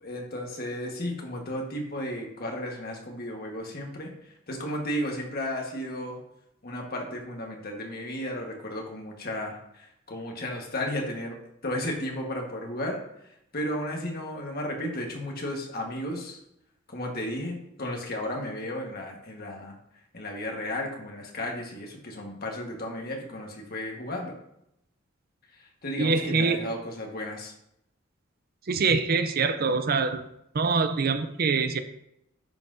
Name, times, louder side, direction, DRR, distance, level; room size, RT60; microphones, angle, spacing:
voice 1, 0.0-6.2 6.6-11.4 11.6-13.0 13.5-16.4 16.9-19.8 20.1-24.3 25.8-27.5, left 1 dB, 50° left, 0 dB, 1.5 m, -34 dB
voice 2, 26.0-26.7 28.7-30.2 30.5-31.8, right 4 dB, 50° right, 10 dB, 0.5 m, -24 dB
10.5 x 5.6 x 2.7 m, 0.80 s
head